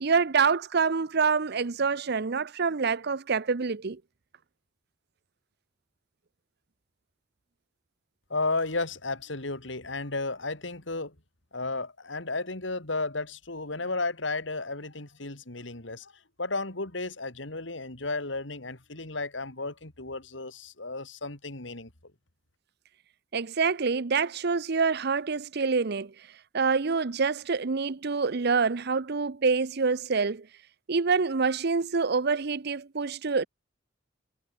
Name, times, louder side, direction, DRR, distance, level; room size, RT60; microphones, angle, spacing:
voice 1, 0.0-4.0 23.3-26.1 26.5-30.5 30.9-33.5, right 5 dB, 60° right, 0.8 m, -26 dB
voice 2, 8.3-11.1 11.5-16.1 16.4-21.9, left 3 dB, 70° left, 3.2 m, -33 dB
head